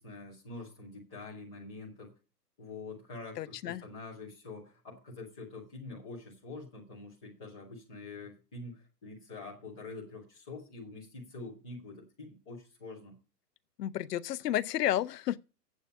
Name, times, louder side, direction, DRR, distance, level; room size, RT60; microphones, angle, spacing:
voice 1, 0.0-2.1 2.6-13.1, left 3 dB, 5° left, 0.4 m, -46 dB
voice 2, 3.4-3.8 13.8-15.4, left 12 dB, 75° left, 0.7 m, -31 dB
8.3 x 7.9 x 5.2 m
hypercardioid pair, 140°, 49 cm